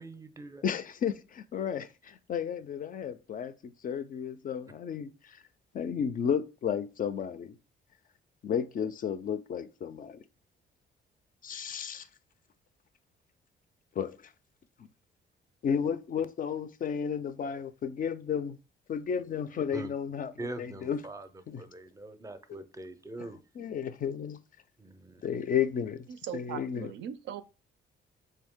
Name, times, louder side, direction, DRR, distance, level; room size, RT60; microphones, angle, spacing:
voice 1, 0.0-0.6 19.7-19.9 20.4-21.3 21.6-23.4 24.8-25.2, right 2 dB, 15° right, 0.5 m, -43 dB
voice 2, 0.6-5.4 5.7-7.6 8.4-10.2 11.4-12.1 14.0-14.1 15.6-18.6 18.9-21.0 21.5-21.6 23.6-24.4 25.2-26.1 26.3-26.9, left 7 dB, 45° left, 0.4 m, -33 dB
voice 3, 26.1-27.4, right 9 dB, 70° right, 0.4 m, -39 dB
3.8 x 2.7 x 3.6 m
cardioid pair, 90°, 20 cm